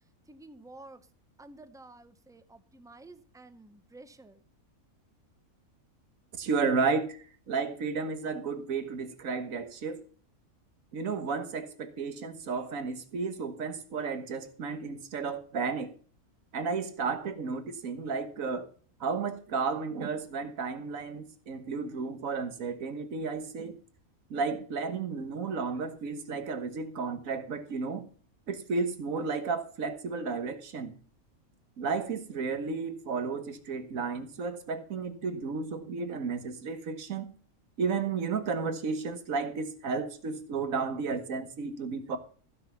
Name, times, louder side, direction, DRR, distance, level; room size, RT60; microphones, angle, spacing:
voice 1, 0.3-1.1 1.4-4.4, right 2 dB, 5° right, 11 dB, 0.4 m, -51 dB
voice 2, 6.4-10.0 10.9-15.9 16.5-18.7 19.0-23.8 24.3-28.0 28.5-30.9 31.8-37.3 37.8-42.2, right 4 dB, 70° right, 10 dB, 1.6 m, -33 dB
15.0 x 6.1 x 6.8 m, 0.43 s
omnidirectional pair, 1.5 m